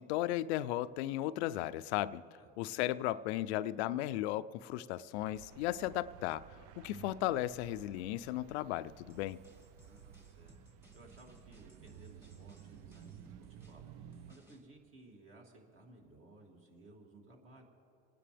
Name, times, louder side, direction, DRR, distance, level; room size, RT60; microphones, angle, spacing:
voice 1, 0.0-2.2 2.6-6.4 6.8-9.4, left 14 dB, 80° left, 0.5 m, -35 dB
sound 1, 5.1-14.3, right 9 dB, 60° right, 0.7 m, -55 dB
sound 2, 9.1-14.6, equal, 5° right, 2.1 m, -64 dB
voice 2, 9.9-10.6 10.9-13.8 14.3-17.6, right 2 dB, 40° right, 2.8 m, -58 dB
28.0 x 9.8 x 3.4 m
supercardioid pair, 100°, 33 cm